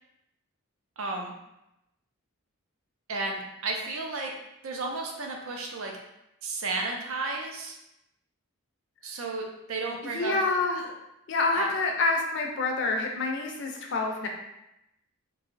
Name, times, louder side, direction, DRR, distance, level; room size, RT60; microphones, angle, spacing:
voice 1, 1.0-1.3 3.1-4.3 4.6-5.9 6.4-7.8 9.0-10.3 11.5-11.7, right 3 dB, 70° right, 1 dB, 0.5 m, -33 dB
voice 2, 10.1-10.9 11.3-14.3, left 3 dB, 55° left, 1 dB, 0.5 m, -27 dB
3.1 x 2.7 x 2.5 m, 0.87 s
head